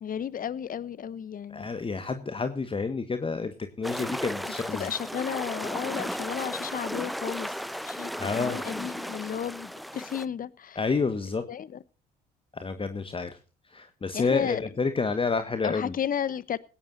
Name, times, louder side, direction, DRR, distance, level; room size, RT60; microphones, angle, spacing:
voice 1, 0.0-1.7 4.7-7.6 7.8-8.1 8.4-10.8 11.5-11.8 14.1-14.6 15.6-16.6, left 9 dB, 40° left, 1.1 m, -33 dB
voice 2, 1.5-4.9 8.2-8.6 10.7-11.5 12.5-13.4 13.6-15.9, left 4 dB, 25° left, 1.5 m, -29 dB
sound 1, 3.8-10.3, equal, ahead, 0.8 m, -35 dB
20.0 x 17.5 x 2.6 m
hypercardioid pair, 55°, 21 cm